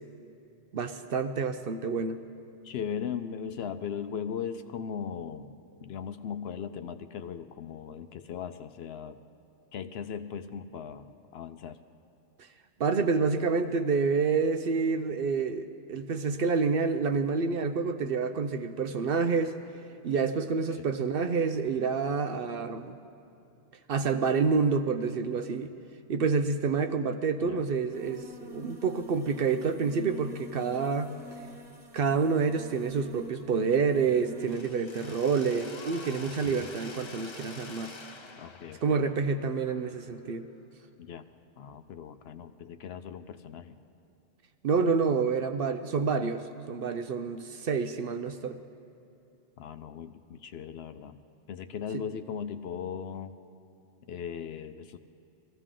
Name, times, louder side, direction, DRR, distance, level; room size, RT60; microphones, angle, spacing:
voice 1, 0.7-2.2 12.8-19.5 20.0-23.0 23.9-25.7 26.1-31.1 31.9-37.9 38.8-40.5 44.6-48.6, right 5 dB, 60° right, 9 dB, 0.7 m, -28 dB
voice 2, 2.6-9.2 9.7-11.8 20.7-20.9 27.4-27.6 36.2-36.7 38.4-39.0 41.0-41.2 41.6-43.8 49.6-51.2 51.5-53.3 54.1-55.0, left 7 dB, 65° left, 10 dB, 0.7 m, -38 dB
sound 1, 27.9-34.6, left 1 dB, ahead, 1.8 m, -47 dB
Mechanisms, 34.5-40.3, left 3 dB, 40° left, 0.4 m, -47 dB
21.5 x 15.0 x 3.8 m, 2.7 s
omnidirectional pair, 1.2 m